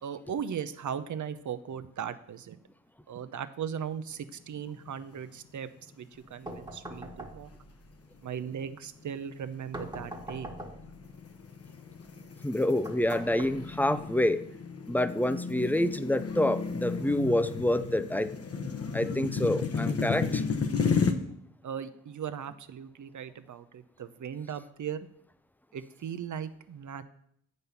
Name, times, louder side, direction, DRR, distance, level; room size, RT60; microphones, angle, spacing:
voice 1, 0.0-2.6 3.1-7.5 8.2-10.5 21.6-25.1 25.7-27.0, right 8 dB, 65° right, 11 dB, 0.7 m, -38 dB
sound 1, 4.7-5.2 5.6-5.7 6.4-6.9 7.4-7.6 8.3-21.1, left 5 dB, 45° left, 1.0 m, -33 dB
sound 2, 6.5-7.7 9.7-11.0 12.8-14.0, right 1 dB, 15° right, 1.4 m, -42 dB
voice 2, 12.4-14.4 14.9-18.3 18.9-20.4 20.9-21.0, left 1 dB, 5° left, 13 dB, 0.5 m, -27 dB
8.0 x 5.4 x 5.7 m, 0.70 s
cardioid pair, 55°, 33 cm